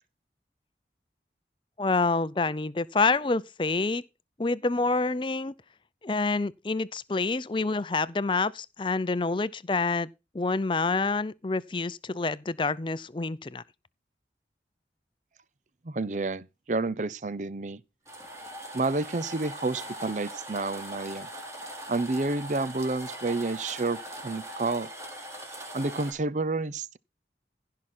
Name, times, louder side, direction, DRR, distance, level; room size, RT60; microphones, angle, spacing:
voice 1, 1.8-4.0 4.4-5.5 6.0-10.1 10.3-13.6, left 3 dB, 30° left, 0.5 m, -27 dB
voice 2, 15.8-17.8 18.7-21.3 21.9-24.9 25.7-27.0, right 3 dB, 45° right, 0.6 m, -30 dB
sound 1, 18.1-26.1, right 1 dB, 15° right, 3.6 m, -41 dB
16.0 x 5.8 x 4.4 m
head